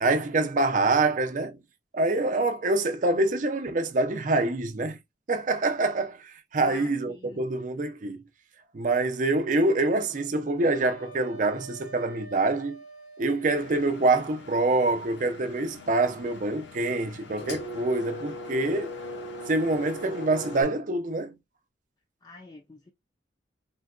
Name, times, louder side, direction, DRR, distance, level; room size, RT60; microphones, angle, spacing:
voice 1, 0.0-1.6 1.9-5.0 5.3-8.2 8.7-12.8 13.2-18.9 19.5-21.3, right 2 dB, 45° right, 0.5 m, -25 dB
voice 2, 6.6-7.5 22.2-22.9, left 4 dB, 25° left, 0.4 m, -47 dB
Wind instrument woodwind instrument, 10.6-13.8, right 2 dB, 50° left, 0.7 m, -46 dB
Engine, 13.5-20.6, left 1 dB, 85° left, 0.6 m, -40 dB
3.8 x 2.2 x 2.3 m
head